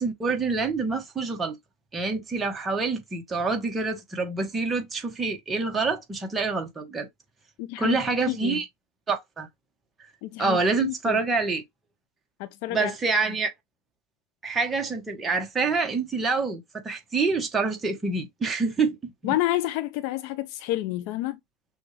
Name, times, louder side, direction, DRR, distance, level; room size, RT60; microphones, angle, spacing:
voice 1, 0.0-1.6 1.9-7.1 7.8-8.7 9.1-9.5 10.4-11.6 12.7-13.5 14.4-19.3, right 4 dB, 15° right, 1.3 m, -27 dB
voice 2, 7.6-8.6 10.2-11.2 12.4-12.9 19.2-21.4, left 15 dB, 60° left, 0.6 m, -29 dB
6.1 x 2.5 x 3.3 m
supercardioid pair, 115°, 0 cm